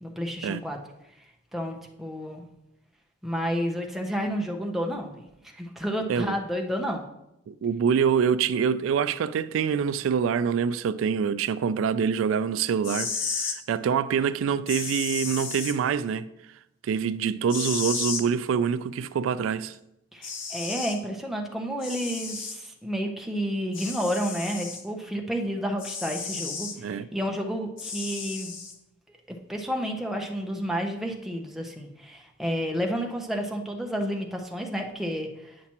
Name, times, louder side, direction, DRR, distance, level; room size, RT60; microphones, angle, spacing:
voice 1, 0.0-0.8 1.5-2.5 3.2-5.2 5.5-7.0 20.1-28.5 29.3-35.6, equal, ahead, 0.7 m, -31 dB
voice 2, 7.5-16.3 16.8-19.8 26.8-27.1, right 7 dB, 85° right, 0.3 m, -25 dB
sound 1, 12.8-13.6 14.7-15.7 17.5-18.2 19.7-19.8 20.2-21.0 21.8-22.6 23.7-24.8 25.8-26.8 27.8-28.7, left 5 dB, 75° left, 0.9 m, -33 dB
9.5 x 5.8 x 2.9 m
head